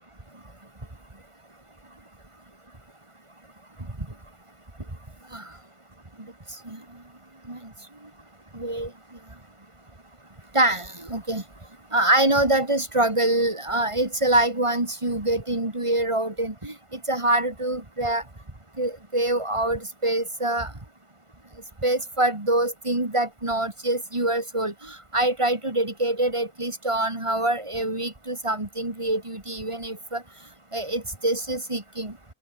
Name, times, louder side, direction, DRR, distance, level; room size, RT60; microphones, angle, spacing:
voice 1, 8.5-8.9 10.5-11.4 11.9-16.7 17.1-18.2 18.8-20.7 21.8-30.2 30.7-32.1, right 1 dB, 25° right, 2.6 m, -25 dB
omnidirectional pair, 1.1 m